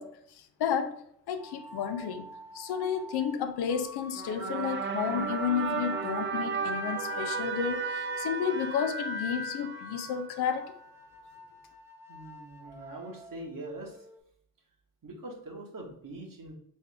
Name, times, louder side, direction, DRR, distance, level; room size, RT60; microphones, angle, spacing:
voice 1, 0.0-10.7, left 8 dB, 85° left, 0.6 m, -32 dB
sound 1, 1.4-14.2, left 1 dB, 5° right, 0.8 m, -42 dB
sound 2, 4.2-10.5, right 6 dB, 30° right, 0.4 m, -35 dB
voice 2, 12.1-14.0 15.0-16.5, right 1 dB, 55° right, 1.5 m, -43 dB
3.6 x 3.5 x 3.4 m
supercardioid pair, 50°, 38 cm